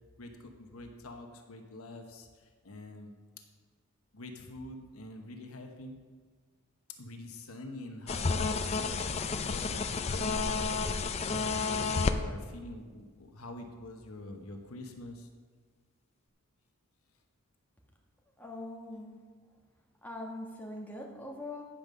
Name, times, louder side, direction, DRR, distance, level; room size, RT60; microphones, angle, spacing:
voice 1, 0.2-2.3 2.6-3.1 4.1-5.9 7.0-10.4 11.2-15.3, left 1 dB, 85° left, 4 dB, 1.1 m, -46 dB
sound 1, 8.1-12.2, left 4 dB, 30° left, 0.4 m, -31 dB
voice 2, 18.4-19.2 20.0-21.6, left 1 dB, 10° left, -2 dB, 1.3 m, -42 dB
10.5 x 5.3 x 6.4 m, 1.5 s
head